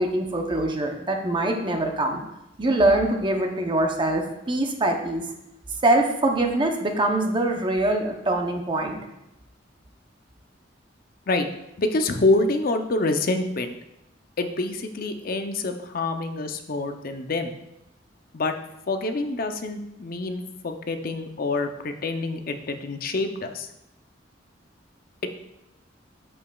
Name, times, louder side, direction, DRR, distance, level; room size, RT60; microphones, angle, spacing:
voice 1, 0.0-2.2 2.6-5.2 5.8-9.0, right 1 dB, 25° right, 3 dB, 0.7 m, -23 dB
voice 2, 11.8-13.8 14.4-17.6 18.3-18.6 18.9-23.7, left 2 dB, 50° left, 6 dB, 0.6 m, -26 dB
8.4 x 7.1 x 2.3 m, 0.88 s
head